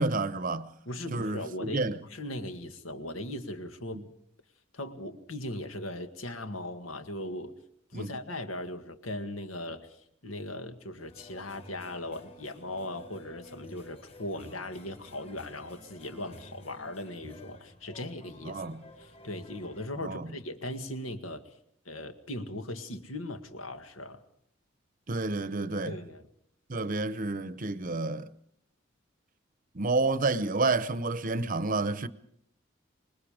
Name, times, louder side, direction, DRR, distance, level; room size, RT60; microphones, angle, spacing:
voice 1, 0.0-0.7 1.1-2.0 3.9-4.0 7.9-8.1 18.5-18.8 20.0-20.3 25.1-26.0 26.7-28.3 29.7-32.1, right 3 dB, 40° right, 0.8 m, -29 dB
voice 2, 0.9-4.0 4.7-7.6 7.9-10.0 10.2-18.6 19.0-21.4 21.9-24.2 25.9-26.3, left 1 dB, 80° left, 1.9 m, -38 dB
sound 1, 11.0-19.9, left 1 dB, 30° left, 4.8 m, -51 dB
26.0 x 20.5 x 5.1 m
head